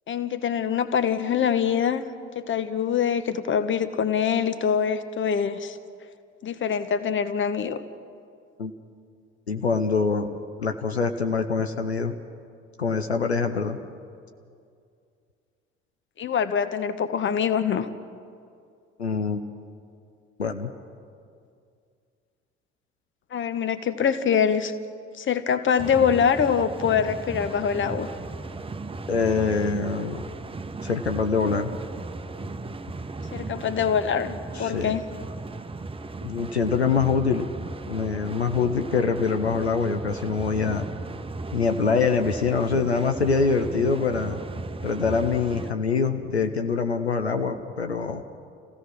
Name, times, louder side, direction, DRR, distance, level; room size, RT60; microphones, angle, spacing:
voice 1, 0.1-2.0 2.3-5.8 6.4-7.8 16.2-17.9 23.3-24.7 25.2-28.1 33.3-35.1, left 7 dB, 35° left, 12 dB, 1.2 m, -24 dB
voice 2, 9.5-10.3 10.6-12.1 12.8-13.8 19.0-19.4 20.4-20.7 29.1-30.3 30.8-31.7 34.5-35.0 36.2-37.5 37.9-40.9 41.5-44.4 44.8-48.2, left 5 dB, 85° left, 7 dB, 0.7 m, -24 dB
sound 1, 25.8-45.7, right 3 dB, 15° right, 1.0 m, -36 dB
28.0 x 16.5 x 6.1 m, 2.4 s
figure-of-eight pair, 50°, 32 cm